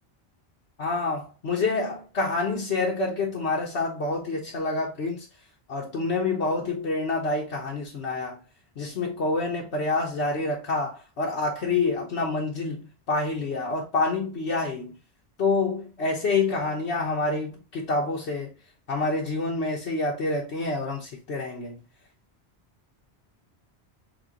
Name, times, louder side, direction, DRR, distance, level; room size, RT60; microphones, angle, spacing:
voice 1, 0.8-5.2 5.7-8.4 8.8-14.9 15.4-18.5 18.9-21.7, left 3 dB, 85° left, 1.3 m, -27 dB
7.3 x 2.5 x 2.8 m
omnidirectional pair, 1.1 m